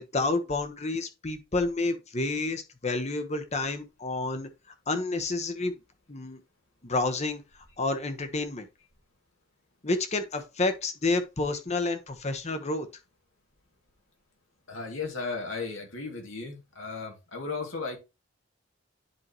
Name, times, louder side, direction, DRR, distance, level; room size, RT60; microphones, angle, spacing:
voice 1, 0.0-4.5 4.9-5.8 6.1-6.4 6.8-7.4 7.8-8.7 9.8-12.9, left 2 dB, 35° left, 1.1 m, -29 dB
voice 2, 14.7-18.0, left 4 dB, 80° left, 2.6 m, -35 dB
10.5 x 4.6 x 3.0 m
head